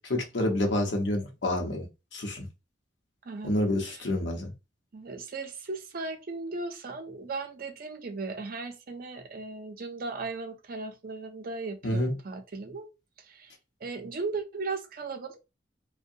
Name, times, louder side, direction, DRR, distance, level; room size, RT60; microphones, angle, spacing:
voice 1, 0.1-1.9 2.1-2.4 3.4-4.5 11.8-12.1, left 1 dB, 70° left, 0.8 m, -28 dB
voice 2, 3.2-3.5 3.8-4.1 4.9-12.9 13.2-13.5 13.8-15.4, right 3 dB, 50° right, 0.5 m, -37 dB
2.6 x 2.1 x 2.6 m
head